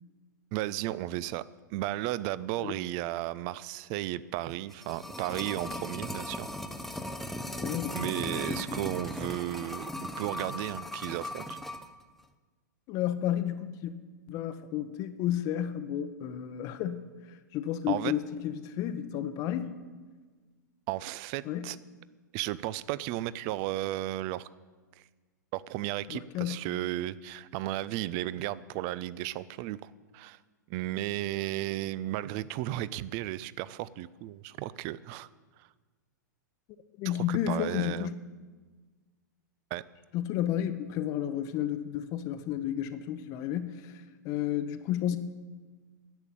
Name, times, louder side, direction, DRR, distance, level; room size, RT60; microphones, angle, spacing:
voice 1, 0.5-1.4 1.7-6.5 7.9-9.9 10.2-11.6 17.9-18.2 20.9-21.8 22.3-24.5 25.5-30.4 30.7-35.3 35.6-35.7 37.0-38.1 39.7-39.8, right 15 dB, 35° right, 18 dB, 0.5 m, -34 dB
sound 1, 4.5-11.9 12.2-12.3, left 1 dB, ahead, 0.7 m, -37 dB
voice 2, 7.6-8.0 12.9-13.9 14.3-19.8 21.4-21.7 26.1-26.7 37.0-38.2 40.1-45.2, left 11 dB, 35° left, 11 dB, 0.8 m, -32 dB
10.5 x 8.3 x 8.9 m, 1.4 s
figure-of-eight pair, 105°, 10 cm